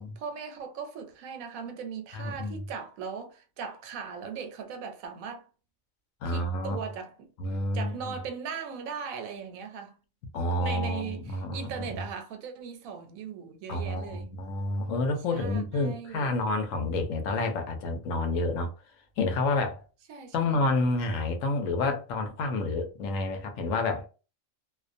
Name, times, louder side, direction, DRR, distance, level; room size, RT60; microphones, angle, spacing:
voice 1, 0.0-5.4 6.2-7.3 7.7-10.0 10.6-14.3 15.3-16.4 20.1-20.6, right 6 dB, 80° right, 1.0 m, -39 dB
voice 2, 2.1-2.6 6.2-6.8 7.4-8.2 10.3-12.0 13.7-18.7 19.2-19.8 20.3-24.1, left 2 dB, 70° left, 1.0 m, -29 dB
2.4 x 2.1 x 2.5 m
omnidirectional pair, 1.4 m